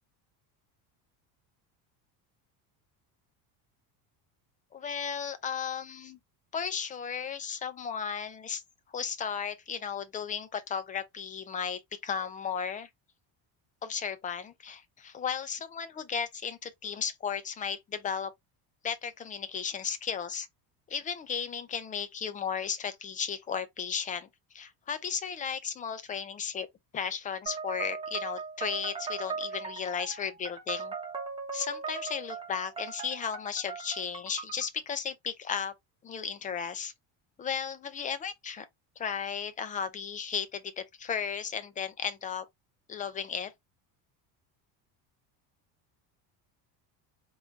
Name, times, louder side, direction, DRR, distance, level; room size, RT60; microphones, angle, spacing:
voice 1, 4.7-6.2 6.5-8.6 8.9-12.9 13.8-18.3 18.8-20.5 20.9-24.3 24.5-26.7 26.9-30.9 31.5-35.7 36.0-36.9 37.4-38.7 39.0-42.5 42.9-43.5, left 7 dB, 20° left, 0.3 m, -35 dB
sound 1, 27.5-34.7, right 5 dB, 15° right, 1.0 m, -39 dB
3.8 x 2.5 x 3.1 m
cardioid pair, 150°, 43 cm